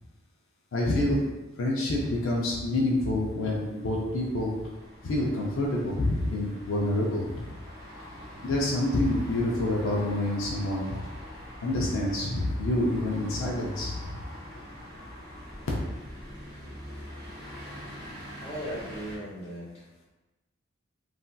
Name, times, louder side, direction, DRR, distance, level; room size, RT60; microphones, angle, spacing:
voice 1, 0.7-1.2 1.6-4.5 5.0-7.4 8.4-11.0 11.6-14.2, left 1 dB, 80° left, -3 dB, 0.5 m, -27 dB
sound 1, 2.0-19.2, equal, 50° right, 0.9 m, -44 dB
voice 2, 18.4-19.9, equal, 30° left, -8 dB, 1.0 m, -37 dB
3.2 x 2.6 x 2.2 m, 1.1 s
head